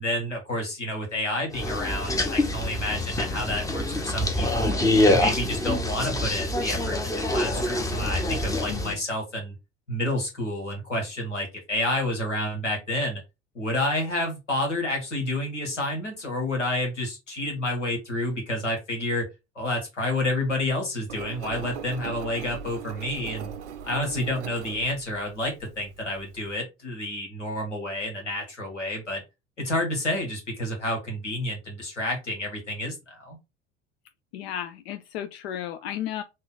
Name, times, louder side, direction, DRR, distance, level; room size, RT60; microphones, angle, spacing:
voice 1, 0.0-4.8 5.1-9.5 9.9-13.2 13.5-19.3 19.5-23.5 23.8-29.2 29.6-33.4, left 1 dB, 85° left, 1.5 m, -29 dB
sound 1, 1.5-8.9, left 1 dB, 10° left, 0.8 m, -25 dB
voice 2, 8.7-9.0 34.3-36.2, left 11 dB, 60° left, 0.5 m, -34 dB
Engine, 21.1-26.6, right 7 dB, 80° right, 0.5 m, -40 dB
3.8 x 2.5 x 3.9 m
figure-of-eight pair, 65°, 35 cm